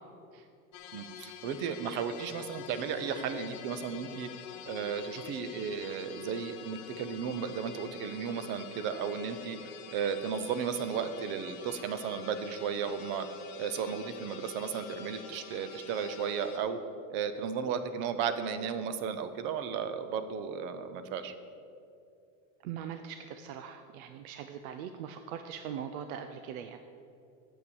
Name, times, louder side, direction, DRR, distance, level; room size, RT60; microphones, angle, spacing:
sound 1, 0.7-16.6, left 8 dB, 60° left, 1.1 m, -47 dB
voice 1, 0.9-4.3 4.7-9.6 9.9-13.3 13.6-16.8 17.1-21.3, right 7 dB, 30° right, 10 dB, 0.4 m, -34 dB
voice 2, 22.6-26.8, right 8 dB, 90° right, 8 dB, 0.7 m, -41 dB
8.5 x 8.1 x 6.9 m, 2.5 s
cardioid pair, 175°, 41 cm